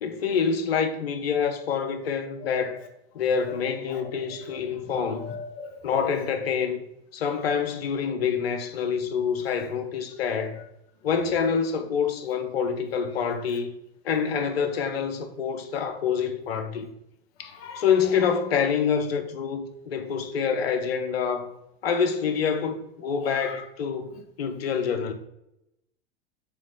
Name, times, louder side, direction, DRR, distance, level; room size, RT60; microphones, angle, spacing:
voice 1, 0.0-2.8 3.1-5.3 5.8-6.8 7.1-10.6 11.0-13.7 14.0-16.9 17.4-21.5 21.8-25.1, left 6 dB, 80° left, 1.0 m, -26 dB
voice 2, 5.1-6.2 10.4-10.5 17.6-18.2 23.2-23.5, left 6 dB, 45° left, 1.4 m, -39 dB
6.8 x 3.1 x 5.4 m
hypercardioid pair, 105°, 30 cm